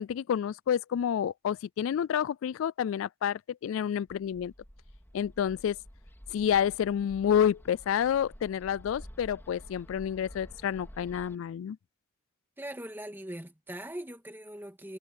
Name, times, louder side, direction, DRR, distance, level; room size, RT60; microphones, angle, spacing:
voice 1, 0.0-4.5 5.1-5.8 6.3-11.8, left 9 dB, 75° left, 0.3 m, -29 dB
Bird, 4.1-11.4, equal, 10° left, 3.5 m, -51 dB
voice 2, 12.6-15.0, right 1 dB, 10° right, 2.5 m, -41 dB
head